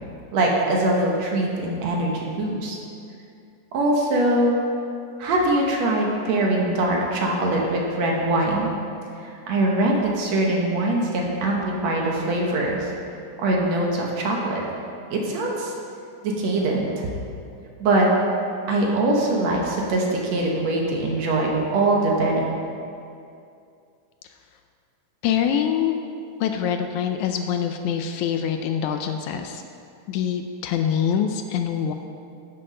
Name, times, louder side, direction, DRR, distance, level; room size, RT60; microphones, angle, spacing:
voice 1, 0.3-2.8 3.7-4.6 5.2-8.7 9.2-12.9 13.4-14.6 15.1-15.7 16.2-17.1 17.8-18.1 18.7-22.4, right 2 dB, 65° right, -1 dB, 2.2 m, -22 dB
voice 2, 25.2-26.0 26.4-29.6 30.1-31.9, left 8 dB, 80° left, 6 dB, 1.8 m, -24 dB
11.0 x 6.6 x 5.4 m, 2.5 s
omnidirectional pair, 3.6 m